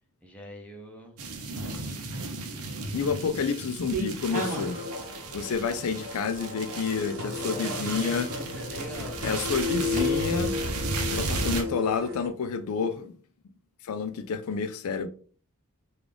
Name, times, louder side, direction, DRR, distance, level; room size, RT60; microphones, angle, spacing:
voice 1, 0.2-1.3 1.7-2.4 7.4-9.2, equal, 5° left, 0.6 m, -43 dB
sound 1, 1.2-11.6, right 3 dB, 75° right, 0.7 m, -35 dB
sound 2, 1.7-2.1 2.7-3.3 3.5-4.8 5.2-5.7 6.3-6.4 7.0-7.1 7.7-7.8 9.9-10.1, right 3 dB, 35° right, 1.2 m, -35 dB
voice 2, 2.9-4.8 5.3-8.3 9.2-10.6 11.0-13.1 13.8-15.1, left 5 dB, 70° left, 0.4 m, -29 dB
sound 3, 4.3-12.3, left 3 dB, 55° right, 1.1 m, -34 dB
3.7 x 2.4 x 3.2 m
head